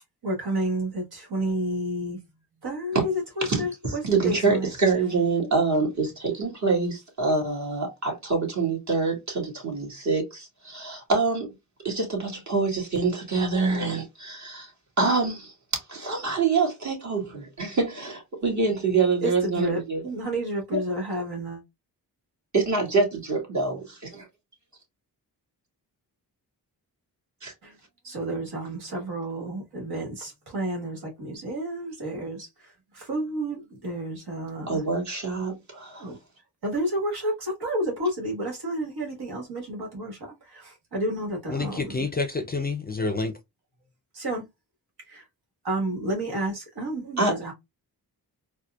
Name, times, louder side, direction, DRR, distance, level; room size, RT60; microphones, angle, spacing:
voice 1, 0.2-2.2 2.6-4.7 19.2-21.6 27.6-27.7 28.0-32.5 32.9-34.8 36.0-36.2 36.6-40.2 40.5-42.0 44.1-44.5 45.1-45.2 45.6-47.5, right 1 dB, 70° right, 1.4 m, -30 dB
voice 2, 3.4-11.5 11.8-14.7 15.0-20.0 20.7-20.8 22.5-24.3 27.4-27.5 34.7-36.1 47.2-47.4, right 4 dB, 45° right, 1.7 m, -26 dB
voice 3, 41.5-43.4, left 3 dB, 25° left, 0.4 m, -28 dB
4.2 x 2.2 x 2.3 m
cardioid pair, 70°, 39 cm